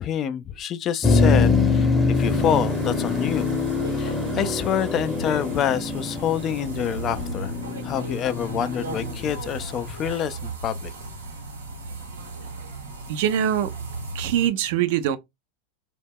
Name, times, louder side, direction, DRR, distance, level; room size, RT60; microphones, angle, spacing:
voice 1, 0.0-3.5 3.9-7.5 7.8-10.9, left 9 dB, 40° left, 0.3 m, -27 dB
Motor vehicle (road), 1.0-10.0, left 4 dB, 10° left, 0.7 m, -24 dB
sound 1, 2.1-14.5, right 3 dB, 90° right, 0.9 m, -36 dB
voice 2, 13.1-13.7 14.1-15.2, right 10 dB, 60° right, 0.4 m, -23 dB
2.2 x 2.0 x 3.4 m
hypercardioid pair, 95°, 0 cm